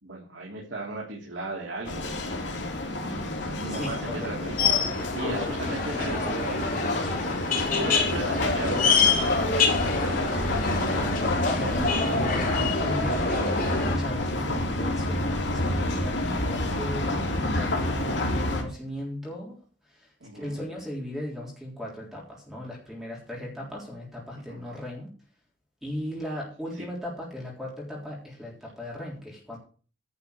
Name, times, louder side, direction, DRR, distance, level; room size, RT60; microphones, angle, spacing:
voice 1, 0.0-2.3 3.6-4.7 5.1-7.4 7.8-10.8 20.2-20.6 24.5-24.6 26.8-26.9, right 2 dB, 85° right, -3 dB, 3.2 m, -37 dB
sound 1, 1.8-18.6, left 1 dB, 70° left, 3.0 m, -29 dB
voice 2, 3.7-4.6 5.2-5.5 11.5-19.6 19.9-20.1 20.3-25.1 25.8-29.6, equal, ahead, -4 dB, 3.6 m, -37 dB
sound 2, 4.6-14.0, left 4 dB, 50° left, 3.8 m, -27 dB
11.0 x 5.6 x 8.3 m, 0.39 s
head